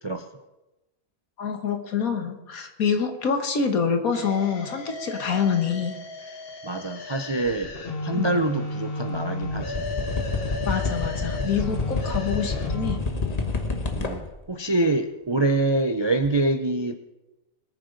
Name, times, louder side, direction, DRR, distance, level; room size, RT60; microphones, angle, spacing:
voice 1, 1.4-6.0 8.1-8.3 10.7-13.0, left 6 dB, 90° left, 6 dB, 1.8 m, -26 dB
sound 1, 4.1-13.0, left 2 dB, 45° left, 1.3 m, -34 dB
voice 2, 6.6-7.7 8.0-9.9 13.9-17.0, right 2 dB, 50° right, 8 dB, 0.3 m, -25 dB
sound 2, 7.4-7.7 9.1-9.2 9.4-14.4 16.2-16.3, left 3 dB, 30° left, 1.2 m, -29 dB
21.5 x 9.5 x 3.9 m, 1.0 s
omnidirectional pair, 1.5 m